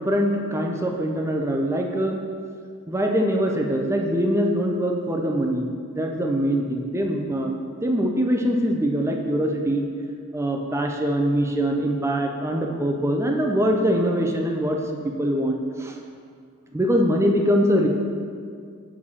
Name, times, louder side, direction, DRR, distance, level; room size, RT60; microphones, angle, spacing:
voice 1, 0.0-2.2 2.9-5.7 5.9-7.5 7.8-9.9 10.3-14.8 15.0-16.0 16.7-17.9, equal, 15° right, 2 dB, 0.5 m, -23 dB
7.1 x 4.8 x 4.2 m, 2.2 s
head